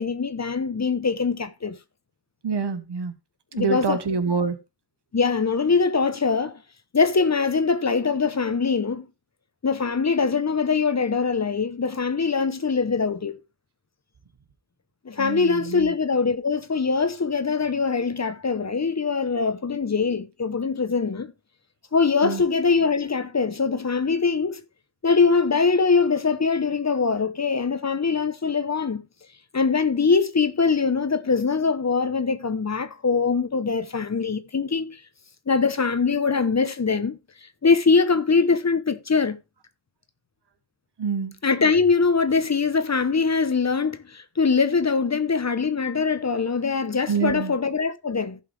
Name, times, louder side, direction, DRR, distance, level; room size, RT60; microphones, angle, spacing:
voice 1, 0.0-1.8 3.5-4.0 5.1-6.6 6.9-9.1 9.6-13.4 15.0-21.3 21.9-24.6 25.0-29.0 29.5-35.0 35.5-37.2 37.6-39.4 41.4-48.4, left 5 dB, 40° left, 0.9 m, -22 dB
voice 2, 2.4-3.1 3.5-4.6 15.2-15.9 22.2-22.4 41.0-41.3 47.1-47.5, right 5 dB, 80° right, 1.3 m, -26 dB
15.0 x 5.6 x 3.3 m
wide cardioid pair, 95°, 41 cm